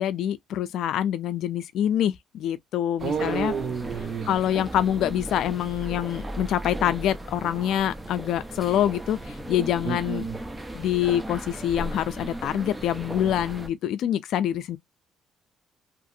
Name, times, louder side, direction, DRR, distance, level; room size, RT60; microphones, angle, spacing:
voice 1, 0.0-3.5 4.2-10.2 10.7-14.8, left 11 dB, 80° left, 0.3 m, -26 dB
sound 1, 3.0-13.7, right 1 dB, 15° right, 0.6 m, -36 dB
voice 2, 3.0-4.4 9.8-10.4, right 6 dB, 60° right, 0.6 m, -30 dB
2.9 x 2.4 x 2.6 m
cardioid pair, 105°, 0 cm